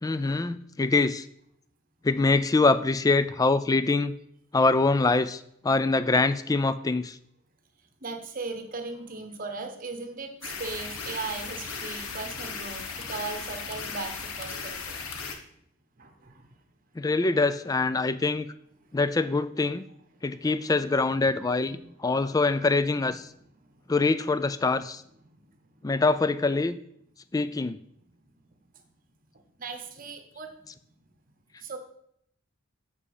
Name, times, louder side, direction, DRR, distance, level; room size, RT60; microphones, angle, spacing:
voice 1, 0.0-1.3 2.0-4.1 4.5-7.2 17.0-18.5 18.9-19.9 20.2-23.3 23.9-25.0 25.8-26.8 27.3-27.8, left 3 dB, 15° left, 13 dB, 0.3 m, -24 dB
voice 2, 8.0-15.0 16.0-16.5 20.2-20.5 21.3-21.4 21.7-21.8 22.9-23.1 23.3-23.6 25.2-25.8 28.2-28.3 29.6-30.6 31.6-31.8, right 4 dB, 40° right, 6 dB, 1.1 m, -38 dB
sound 1, 10.4-15.4, left 5 dB, 80° left, 1.2 m, -37 dB
7.4 x 6.8 x 5.0 m, 0.70 s
head